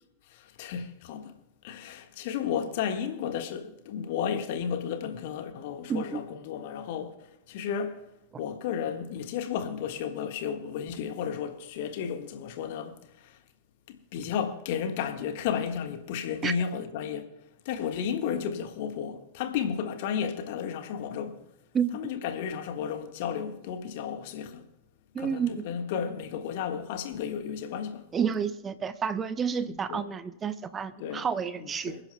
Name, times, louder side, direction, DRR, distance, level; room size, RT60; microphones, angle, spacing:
voice 1, 0.3-1.3 1.6-8.0 8.4-13.4 13.9-17.3 17.6-21.4 21.9-24.7 25.2-28.1 29.7-30.0 31.0-31.3 31.6-32.0, left 7 dB, 50° left, 1.5 m, -33 dB
voice 2, 5.9-6.2 16.4-16.5 21.7-22.1 25.1-25.6 28.1-32.0, right 7 dB, 20° right, 0.5 m, -30 dB
28.0 x 10.5 x 2.2 m
figure-of-eight pair, 90°, 0 cm